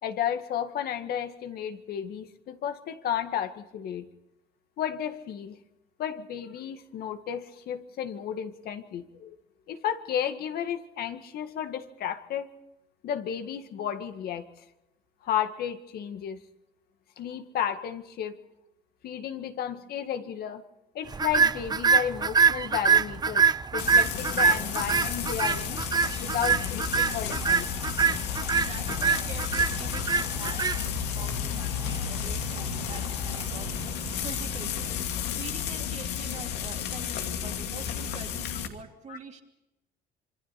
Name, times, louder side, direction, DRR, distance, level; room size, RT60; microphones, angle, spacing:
voice 1, 0.0-4.1 4.8-5.6 6.0-9.4 9.7-12.5 13.0-14.5 15.2-16.4 17.2-18.4 19.0-20.6 20.9-25.8 26.2-27.7 39.1-39.2, left 9 dB, 65° left, 7 dB, 1.9 m, -33 dB
sound 1, 21.1-35.5, right 6 dB, 25° right, 0.7 m, -26 dB
Frying (food), 23.8-38.7, left 10 dB, 90° left, 2.6 m, -32 dB
voice 2, 28.5-33.7 34.2-35.0 35.3-39.4, right 6 dB, 45° right, 3 dB, 3.1 m, -45 dB
27.0 x 24.0 x 4.3 m, 0.93 s
cardioid pair, 110°, 17 cm